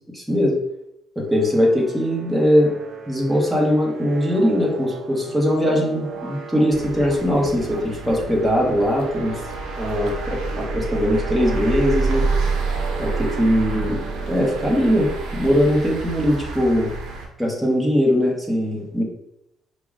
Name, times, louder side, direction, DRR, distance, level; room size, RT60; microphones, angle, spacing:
voice 1, 0.1-0.6 1.2-2.8 3.1-9.4 9.8-12.2 13.0-14.0 14.3-16.9 17.4-19.0, equal, 5° right, -2 dB, 0.9 m, -20 dB
sound 1, 1.3-15.4, right 5 dB, 55° right, 0.5 m, -36 dB
sound 2, 6.7-17.3, right 3 dB, 85° right, 0.7 m, -28 dB
4.6 x 2.1 x 3.6 m, 0.81 s
cardioid pair, 130°, 0 cm